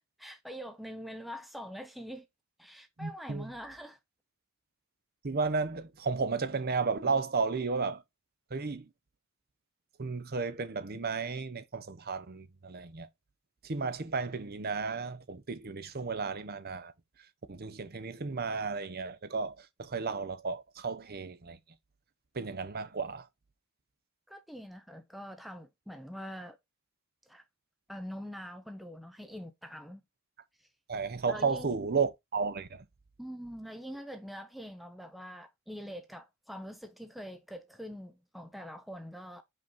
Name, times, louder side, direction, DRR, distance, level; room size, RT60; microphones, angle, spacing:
voice 1, 0.0-2.3 2.6-4.0 24.3-26.6 27.3-27.4 27.9-30.0 30.6-30.7 31.3-31.7 33.2-39.4, equal, ahead, 0.6 m, -44 dB
voice 2, 3.0-3.5 5.2-8.0 8.5-8.9 10.0-13.1 13.6-16.9 17.5-21.6 22.3-23.2 30.9-32.8, right 4 dB, 45° right, 0.8 m, -33 dB
5.3 x 4.0 x 5.4 m
head